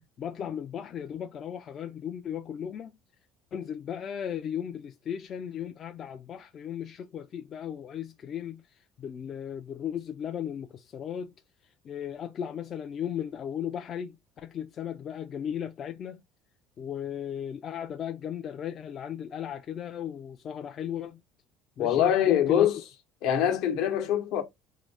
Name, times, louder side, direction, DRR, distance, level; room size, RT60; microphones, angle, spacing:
voice 1, 0.2-2.9 3.5-8.6 9.0-11.3 11.8-16.2 16.8-21.2 21.8-22.7, left 9 dB, 40° left, 0.4 m, -36 dB
voice 2, 21.8-22.8 23.2-24.4, left 10 dB, 70° left, 0.9 m, -24 dB
3.7 x 2.0 x 3.4 m
cardioid pair, 130°, 0 cm